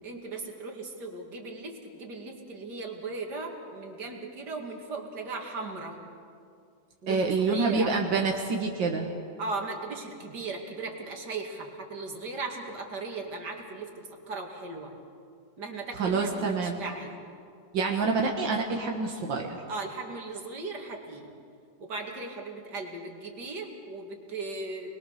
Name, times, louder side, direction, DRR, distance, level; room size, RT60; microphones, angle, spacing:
voice 1, 0.0-6.0 7.0-7.9 9.4-14.9 15.6-16.4 16.6-17.2 19.7-21.3 21.8-25.0, right 3 dB, 65° right, 1 dB, 3.0 m, -37 dB
voice 2, 7.1-9.1 16.0-16.8 17.7-19.6, right 4 dB, 90° right, 0 dB, 2.3 m, -27 dB
29.0 x 21.0 x 6.7 m, 2.4 s
omnidirectional pair, 1.9 m